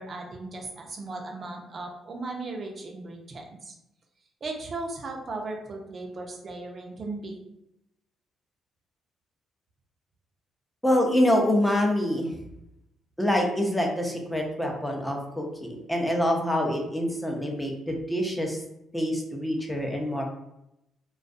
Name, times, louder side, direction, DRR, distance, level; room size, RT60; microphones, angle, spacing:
voice 1, 0.0-3.7 4.4-7.4, right 2 dB, 45° right, 1 dB, 0.6 m, -37 dB
voice 2, 10.8-12.3 13.2-18.6 18.9-20.2, left 1 dB, 10° left, 1 dB, 0.6 m, -26 dB
2.3 x 2.2 x 2.5 m, 0.85 s
cardioid pair, 90°, 0 cm